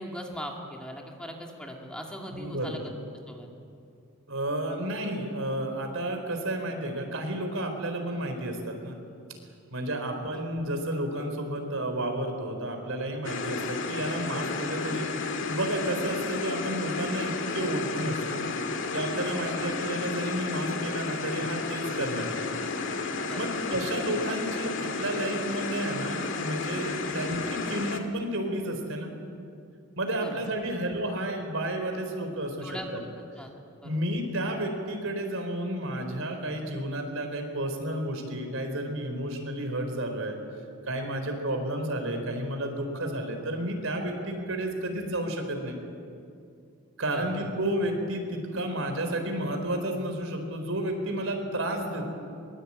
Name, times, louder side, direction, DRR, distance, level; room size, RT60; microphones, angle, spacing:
voice 1, 0.0-2.8 3.3-3.5 19.3-19.5 23.2-23.9 27.0-27.2 30.2-30.7 32.6-33.5 33.8-34.0 47.1-47.5, equal, 5° left, 0 dB, 2.3 m, -40 dB
voice 2, 2.3-2.9 4.3-8.9 9.7-18.5 18.9-22.3 23.3-29.1 30.0-33.0 33.8-40.4 40.8-45.8 47.0-52.0, right 1 dB, 70° right, 5 dB, 4.3 m, -31 dB
sound 1, 13.2-28.0, left 4 dB, 60° left, 2.0 m, -32 dB
22.5 x 22.5 x 8.8 m, 2.5 s
head